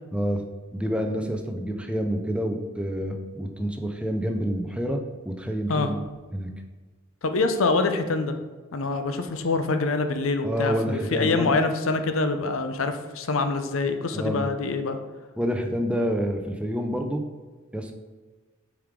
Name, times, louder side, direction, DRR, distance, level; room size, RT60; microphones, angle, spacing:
voice 1, 0.1-0.4 0.7-6.0 6.3-6.5 10.4-11.5 14.1-14.5 15.4-17.2 17.7-17.9, equal, 5° right, 4 dB, 0.5 m, -28 dB
voice 2, 7.2-8.3 8.7-15.0, left 3 dB, 70° left, 8 dB, 0.6 m, -25 dB
6.9 x 4.9 x 3.7 m, 1.3 s
head